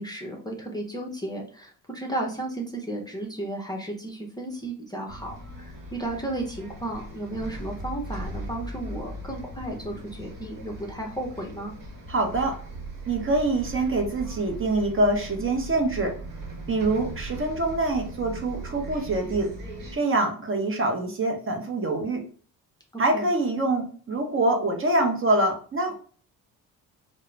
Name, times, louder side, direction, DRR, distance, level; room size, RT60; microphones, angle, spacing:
voice 1, 0.0-11.7 23.1-23.3, right 1 dB, 10° left, 0 dB, 0.6 m, -34 dB
Bus, 5.1-20.0, right 2 dB, 55° right, 1.0 m, -39 dB
voice 2, 12.1-12.5 13.1-16.1 16.7-19.5 19.9-22.2 23.0-26.0, right 2 dB, 30° right, 3 dB, 0.7 m, -25 dB
2.3 x 2.0 x 3.1 m, 0.43 s
supercardioid pair, 60°, 40 cm